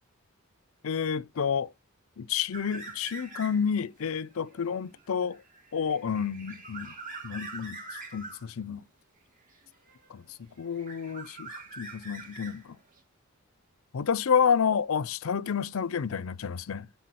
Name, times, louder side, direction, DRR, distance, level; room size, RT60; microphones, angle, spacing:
voice 1, 0.8-1.7 2.2-5.4 5.7-6.9 7.2-7.8 8.1-8.8 10.1-10.2 10.6-12.8 13.9-16.9, left 7 dB, 70° left, 0.5 m, -29 dB
sound 1, 2.5-3.8 4.2-8.5 9.5-10.3 10.6-13.0, right 3 dB, 40° right, 2.3 m, -44 dB
10.0 x 3.6 x 6.2 m
head